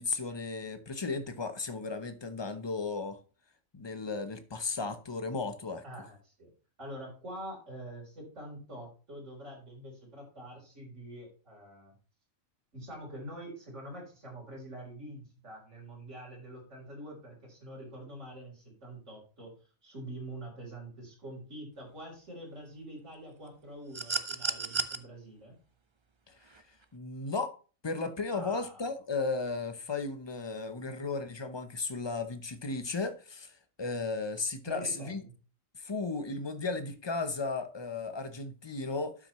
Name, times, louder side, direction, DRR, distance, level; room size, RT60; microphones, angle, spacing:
voice 1, 0.0-3.2 3.7-5.8 26.9-27.6 27.8-35.2 35.7-39.2, left 3 dB, 25° left, 0.6 m, -35 dB
voice 2, 5.8-6.5 6.8-12.0 12.7-19.5 19.8-25.6 28.3-28.8 34.6-35.3, right 1 dB, 60° right, 4.2 m, -45 dB
sound 1, 23.9-25.0 26.5-26.6, right 4 dB, 35° right, 0.5 m, -32 dB
12.0 x 6.1 x 3.0 m
omnidirectional pair, 1.4 m